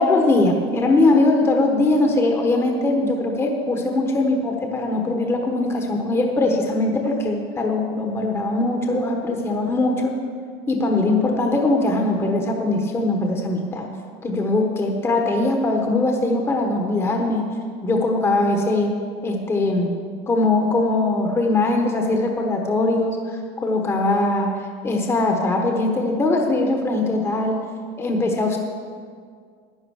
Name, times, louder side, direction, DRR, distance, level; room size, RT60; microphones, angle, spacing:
voice 1, 0.0-10.2 10.7-13.9 14.2-17.5 17.8-18.9 19.2-19.9 20.3-23.2 23.6-24.6 24.8-27.7 28.0-28.6, left 2 dB, 15° left, 2 dB, 1.2 m, -21 dB
11.0 x 10.0 x 6.4 m, 2.1 s
cardioid pair, 145°, 14 cm